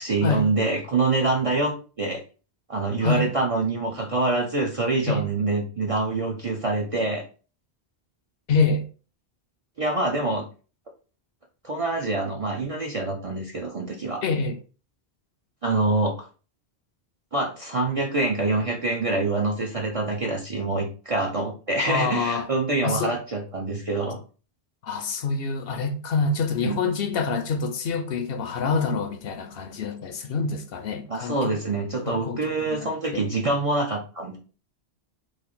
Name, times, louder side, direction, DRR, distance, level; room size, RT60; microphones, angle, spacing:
voice 1, 0.0-2.2 2.7-7.2 9.8-10.5 11.6-14.2 15.6-16.3 17.3-24.2 26.6-26.9 31.1-34.4, right 2 dB, 50° right, 0.4 m, -25 dB
voice 2, 8.5-8.8 14.2-14.6 21.8-22.5 22.8-23.1 24.8-31.5 32.1-32.4 32.8-33.2, left 4 dB, 65° left, 0.7 m, -26 dB
3.2 x 2.5 x 3.7 m
omnidirectional pair, 1.1 m